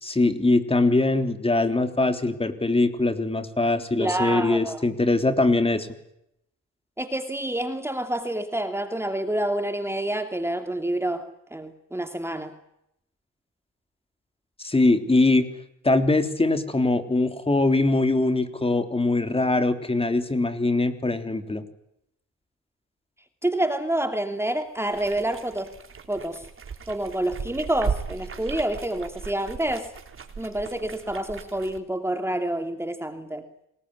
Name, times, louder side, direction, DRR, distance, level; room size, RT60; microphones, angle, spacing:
voice 1, 0.0-5.9 14.6-15.5 15.8-21.7, left 2 dB, 20° left, 9 dB, 3.5 m, -22 dB
voice 2, 4.0-4.8 7.0-12.5 23.4-25.7 26.1-26.4 26.9-29.9 30.4-33.4, right 1 dB, 10° right, 7 dB, 2.8 m, -28 dB
sound 1, 24.9-31.8, right 6 dB, 45° right, 3.8 m, -36 dB
28.0 x 21.0 x 9.9 m, 0.81 s
cardioid pair, 90°, 30 cm